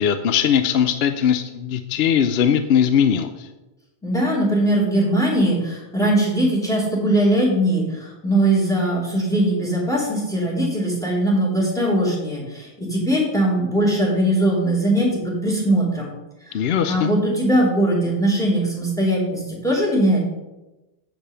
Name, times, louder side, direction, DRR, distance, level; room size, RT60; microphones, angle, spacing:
voice 1, 0.0-3.5 16.5-17.1, left 8 dB, 70° left, 9 dB, 0.8 m, -20 dB
voice 2, 4.0-16.1 16.9-20.2, right 1 dB, 5° left, -4 dB, 2.7 m, -20 dB
8.1 x 5.2 x 5.6 m, 1.1 s
omnidirectional pair, 1.1 m